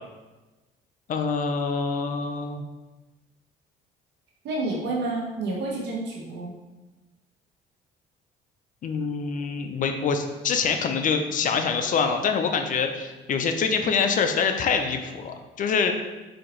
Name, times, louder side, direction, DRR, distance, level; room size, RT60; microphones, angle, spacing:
voice 1, 1.1-2.6 8.8-15.9, left 5 dB, 45° left, 6 dB, 0.4 m, -25 dB
voice 2, 4.4-6.5, right 2 dB, 65° right, -4 dB, 1.2 m, -29 dB
4.0 x 2.8 x 3.0 m, 1.2 s
supercardioid pair, 80°, 19 cm